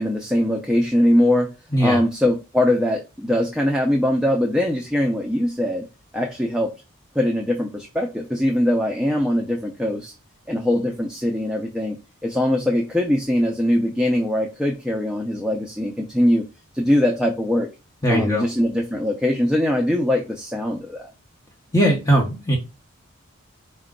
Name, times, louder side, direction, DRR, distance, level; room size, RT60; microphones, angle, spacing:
voice 1, 0.0-1.5 1.8-5.8 6.1-6.7 7.1-10.1 10.5-16.4 16.7-17.7 18.1-21.1, left 1 dB, 5° right, 1 dB, 0.4 m, -21 dB
voice 2, 18.0-18.5 21.7-22.6, equal, 15° left, -1 dB, 0.8 m, -19 dB
4.8 x 2.2 x 3.6 m, 0.28 s
head